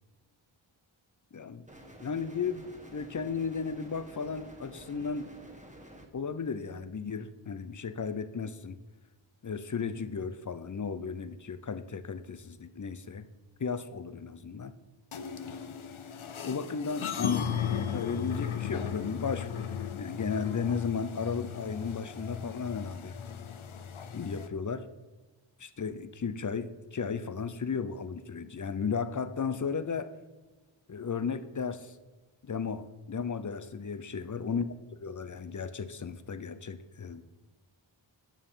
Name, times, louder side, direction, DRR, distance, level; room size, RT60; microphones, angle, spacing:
voice 1, 1.3-1.6 2.0-5.3 6.1-8.8 9.4-13.2 13.6-14.7 16.4-19.7 20.0-23.1 24.1-24.9 25.6-30.1 30.9-32.0 32.4-34.6 35.0-37.2, left 5 dB, 40° left, 13 dB, 0.6 m, -34 dB
sound 1, 1.7-6.1, right 1 dB, 15° right, 1.2 m, -50 dB
sound 2, 15.1-24.5, left 7 dB, 80° left, 0.7 m, -36 dB
9.2 x 7.0 x 5.6 m, 1.2 s
wide cardioid pair, 60°, 48 cm